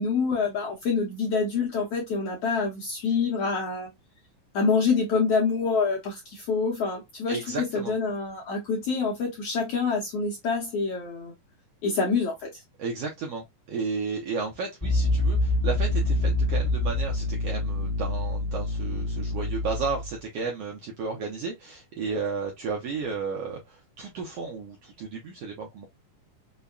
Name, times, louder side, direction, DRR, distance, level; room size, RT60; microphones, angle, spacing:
voice 1, 0.0-3.9 4.5-11.3 11.8-12.6, left 4 dB, 70° left, 1.5 m, -26 dB
voice 2, 7.3-7.9 12.8-25.9, right 4 dB, 75° right, 1.5 m, -33 dB
sound 1, 14.8-20.1, left 1 dB, 15° left, 0.8 m, -26 dB
5.3 x 2.2 x 2.2 m
omnidirectional pair, 3.7 m